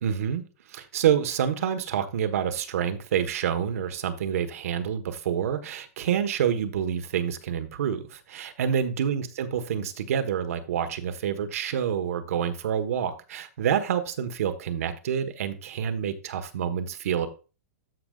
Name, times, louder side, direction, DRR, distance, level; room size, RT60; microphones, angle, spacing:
voice 1, 0.0-0.4 0.7-17.3, right 8 dB, 70° right, 9 dB, 1.3 m, -27 dB
14.0 x 5.2 x 2.4 m, 0.32 s
supercardioid pair, 165°, 8 cm